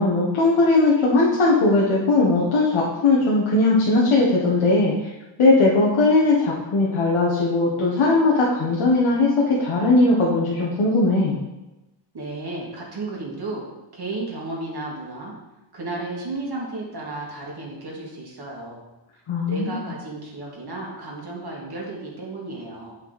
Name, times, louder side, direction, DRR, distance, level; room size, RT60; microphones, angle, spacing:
voice 1, 0.0-5.1 5.4-11.4 19.3-19.7, left 2 dB, 90° left, -5 dB, 1.4 m, -19 dB
voice 2, 12.1-13.6 13.9-15.3 15.7-18.8 19.4-23.0, right 2 dB, 50° right, -3 dB, 2.3 m, -33 dB
8.6 x 5.4 x 4.1 m, 1.0 s
wide cardioid pair, 115°, 47 cm